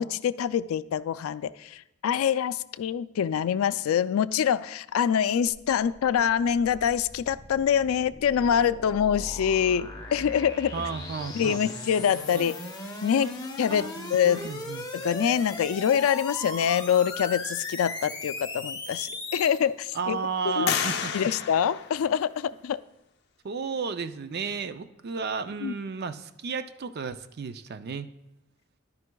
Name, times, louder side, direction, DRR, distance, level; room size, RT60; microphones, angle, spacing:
voice 1, 0.0-10.7 11.3-12.5 13.0-14.4 14.9-20.2 20.4-20.7 21.1-22.8 25.6-25.7, left 8 dB, 85° left, 0.3 m, -25 dB
sound 1, 5.5-19.6, left 3 dB, 20° left, 1.0 m, -38 dB
voice 2, 10.7-11.6 12.3-12.5 13.8-14.9 19.9-21.3 23.4-28.1, right 5 dB, 50° right, 0.5 m, -33 dB
sound 2, 18.4-18.5 19.1-19.7 20.7-22.6, left 7 dB, 55° left, 0.7 m, -32 dB
14.0 x 11.0 x 2.3 m
head